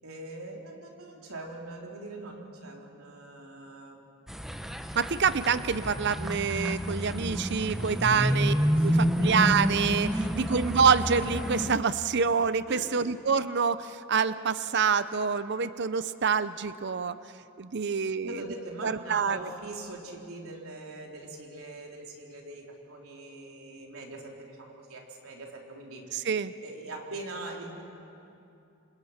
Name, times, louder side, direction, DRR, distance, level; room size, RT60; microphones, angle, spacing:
voice 1, 0.0-4.0 8.1-8.3 8.7-9.4 10.1-10.4 12.7-13.1 17.8-17.9 18.2-26.0 26.6-27.8, right 2 dB, 80° right, 0 dB, 3.6 m, -42 dB
sound 1, 4.3-11.7, equal, ahead, 0.8 m, -29 dB
voice 2, 5.0-8.5 8.8-17.2 17.6-18.3 18.8-19.5 26.1-26.5, right 6 dB, 55° right, 14 dB, 0.6 m, -26 dB
27.5 x 27.0 x 5.9 m, 2.7 s
head